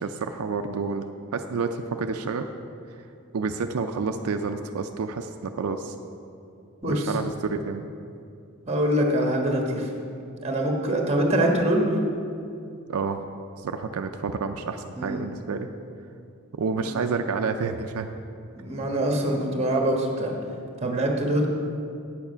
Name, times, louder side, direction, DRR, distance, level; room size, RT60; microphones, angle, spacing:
voice 1, 0.0-1.0 1.3-2.5 3.3-5.9 6.9-7.8 12.9-13.2 13.6-15.7 16.5-18.1 20.8-21.0, right 4 dB, 85° right, 6 dB, 0.4 m, -29 dB
voice 2, 6.8-7.2 8.7-10.0 10.4-11.9 14.9-15.3 16.8-17.0 18.5-20.3 20.8-21.5, right 1 dB, 30° right, 1 dB, 1.2 m, -24 dB
8.7 x 7.2 x 5.6 m, 2.5 s
head